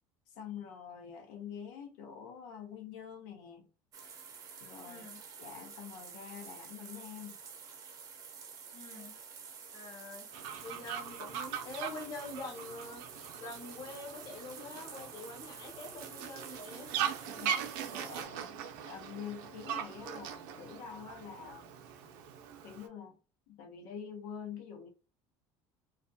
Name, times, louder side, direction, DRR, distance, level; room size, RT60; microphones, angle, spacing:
voice 1, 0.3-3.7 4.6-5.0 5.4-7.4 17.3-17.5 17.9-21.7 22.6-23.2 23.5-24.9, left 7 dB, 85° left, 0.6 m, -46 dB
sound 1, 3.9-18.3, right 6 dB, 35° right, 0.5 m, -50 dB
voice 2, 4.9-5.2 8.7-9.1 9.7-10.3 10.6-13.0 13.4-16.9, left 2 dB, 40° left, 0.7 m, -45 dB
Fowl, 10.3-22.9, right 8 dB, 90° right, 0.5 m, -41 dB
2.5 x 2.2 x 2.6 m
cardioid pair, 175°, 11 cm